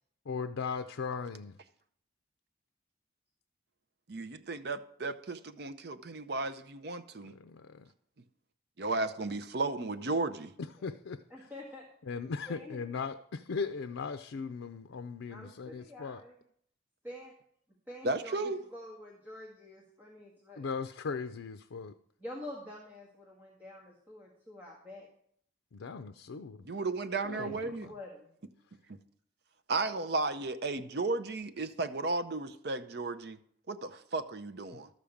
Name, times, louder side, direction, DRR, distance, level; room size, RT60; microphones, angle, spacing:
voice 1, 0.3-1.6 7.3-7.9 10.6-11.5 12.0-16.2 20.6-21.9 25.7-26.7 27.2-27.9 34.7-34.8, left 5 dB, 90° left, 0.5 m, -38 dB
voice 2, 4.1-7.3 8.8-10.5 18.0-18.6 26.6-27.9 29.7-33.4 33.7-34.9, right 3 dB, 55° right, 0.6 m, -34 dB
voice 3, 11.3-11.9 12.5-12.8 15.3-16.3 17.0-17.3 17.9-18.4 18.7-20.7 22.2-25.1 27.3-28.3, left 1 dB, 10° right, 1.7 m, -47 dB
12.5 x 5.1 x 7.1 m
head